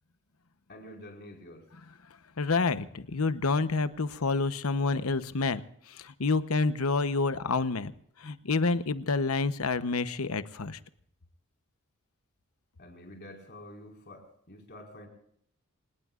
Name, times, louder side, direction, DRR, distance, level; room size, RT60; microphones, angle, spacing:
voice 1, 0.7-1.7 12.8-15.1, left 1 dB, 50° left, 0 dB, 5.0 m, -48 dB
voice 2, 2.4-5.6 5.9-7.9 8.2-10.8, left 3 dB, 85° left, 12 dB, 0.9 m, -28 dB
27.0 x 18.5 x 2.5 m, 0.68 s
head